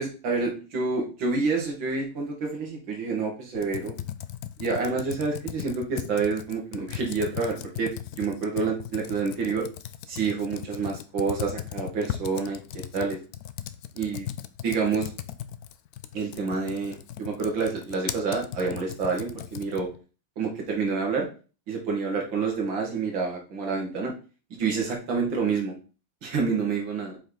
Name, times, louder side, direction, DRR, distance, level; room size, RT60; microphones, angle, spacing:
voice 1, 0.0-3.9 4.6-9.7 10.1-12.6 12.9-13.2 14.0-14.3 14.6-15.1 16.1-19.9 20.4-21.3 21.7-24.1 24.5-25.7 26.2-27.2, right 4 dB, 85° right, 0 dB, 2.6 m, -28 dB
Computer keyboard, 3.5-20.0, left 11 dB, 70° left, 0.9 m, -38 dB
7.6 x 5.1 x 4.0 m, 0.36 s
omnidirectional pair, 2.0 m